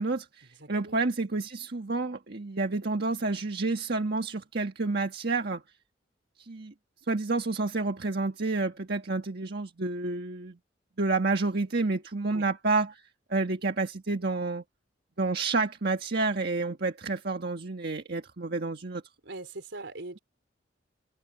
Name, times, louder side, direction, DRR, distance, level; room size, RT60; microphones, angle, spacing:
voice 1, 0.0-5.6 6.4-6.7 7.1-10.6 11.0-13.0 13.3-14.6 15.2-19.0, right 3 dB, 60° right, 1.5 m, -29 dB
voice 2, 0.6-1.0 12.3-12.4 19.2-20.2, right 2 dB, 75° right, 4.3 m, -41 dB
head